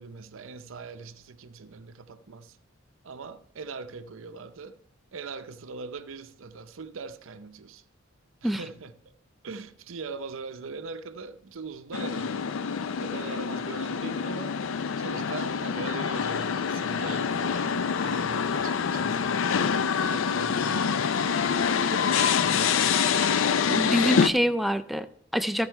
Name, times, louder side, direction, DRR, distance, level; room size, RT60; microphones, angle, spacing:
voice 1, 0.0-2.6 3.0-4.8 5.1-7.8 8.4-9.2 9.4-12.6 13.0-14.6 15.0-19.7 20.0-21.1 21.9-23.0, right 4 dB, 80° right, 0.6 m, -41 dB
sound 1, 11.9-24.3, left 6 dB, 80° left, 0.4 m, -26 dB
voice 2, 23.7-25.7, equal, ahead, 0.3 m, -26 dB
14.5 x 5.4 x 4.5 m
head